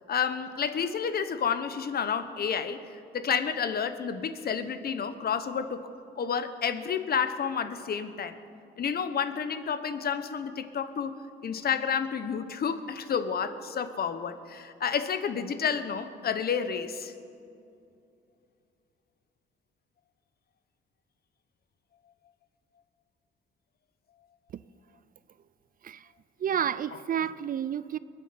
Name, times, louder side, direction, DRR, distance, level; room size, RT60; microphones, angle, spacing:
voice 1, 0.1-2.8 3.1-5.9 6.2-8.4 8.8-11.2 11.4-17.1 26.9-27.0, left 7 dB, 50° left, 1.0 m, -30 dB
voice 2, 26.4-28.0, right 9 dB, 45° right, 0.4 m, -30 dB
22.0 x 9.1 x 5.8 m
cardioid pair, 90°, 20 cm